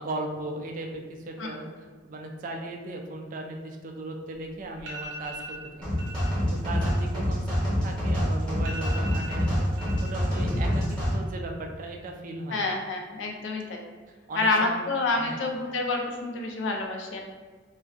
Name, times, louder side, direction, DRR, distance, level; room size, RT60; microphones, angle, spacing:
voice 1, 0.0-6.3 6.6-9.7 10.0-12.7 14.3-14.8 15.2-15.4, right 2 dB, 45° right, 3 dB, 0.3 m, -37 dB
sound 1, 4.3-4.4 4.8-5.6 6.0-6.3 6.6-8.1 8.3-8.4 8.6-10.1 10.4-11.0 11.3-11.8, right 1 dB, 75° right, 0.6 m, -41 dB
sound 2, 5.8-11.1, equal, 5° left, 0.8 m, -26 dB
voice 2, 12.5-13.8 14.3-17.2, left 3 dB, 70° left, 1 dB, 0.4 m, -28 dB
2.3 x 2.1 x 2.5 m, 1.5 s
head